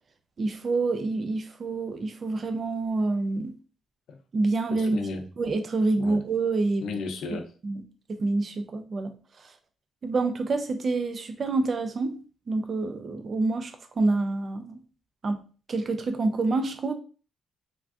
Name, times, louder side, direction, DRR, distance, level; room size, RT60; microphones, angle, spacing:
voice 1, 0.4-3.5 4.3-5.1 5.4-7.0 7.3-7.8 8.1-9.5 10.0-12.2 12.5-14.8 15.2-15.4 15.7-16.9, right 3 dB, 35° right, 0.3 m, -27 dB
voice 2, 4.8-5.2 6.0-6.2 6.8-7.4, left 4 dB, 80° left, 0.5 m, -33 dB
3.3 x 2.5 x 2.4 m
cardioid pair, 170°, 0 cm